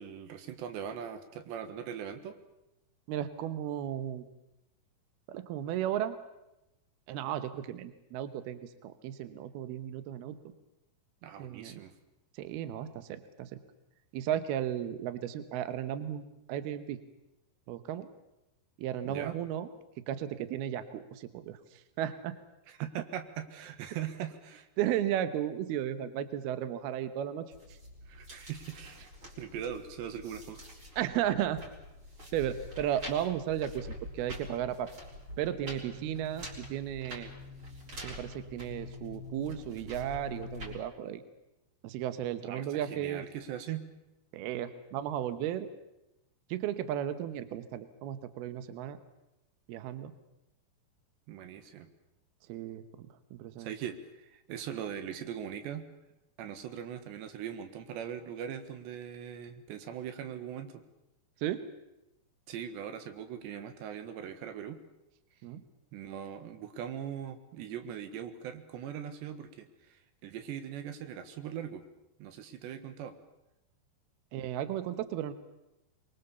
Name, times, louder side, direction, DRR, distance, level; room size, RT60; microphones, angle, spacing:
voice 1, 0.0-2.4 11.2-11.9 19.0-19.4 22.7-24.7 28.1-29.0 29.4-30.7 42.4-43.8 51.3-51.9 53.6-55.8 56.4-60.8 62.5-64.8 65.9-71.8 72.2-73.1, right 9 dB, 90° right, 8 dB, 3.7 m, -40 dB
voice 2, 3.1-4.2 5.3-6.2 7.1-10.4 11.4-11.8 12.4-13.5 14.1-17.0 17.7-18.1 18.8-19.7 20.1-21.6 22.0-22.4 24.8-27.5 31.0-31.6 32.3-34.9 35.4-37.3 38.0-41.2 41.8-43.2 44.3-45.7 46.5-49.0 49.7-50.1 52.5-53.7 61.4-61.6 65.4-65.6 74.3-75.3, right 11 dB, 70° right, 11 dB, 2.9 m, -34 dB
sound 1, 27.5-40.8, left 1 dB, 30° right, 4.5 m, -46 dB
23.5 x 23.0 x 7.0 m, 0.92 s
omnidirectional pair, 4.9 m